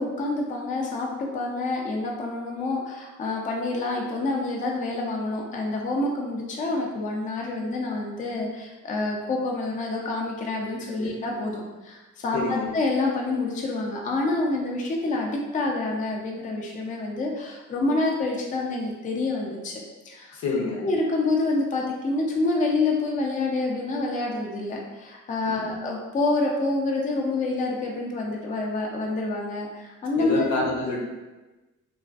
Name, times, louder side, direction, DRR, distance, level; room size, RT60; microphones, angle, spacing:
voice 1, 0.0-20.4 20.8-30.4, left 2 dB, 25° left, -1 dB, 0.4 m, -27 dB
voice 2, 12.3-12.7 20.3-20.8 25.4-25.8 30.2-31.0, left 3 dB, 70° left, -2 dB, 0.6 m, -28 dB
2.4 x 2.3 x 2.3 m, 1.1 s
cardioid pair, 90°, 30 cm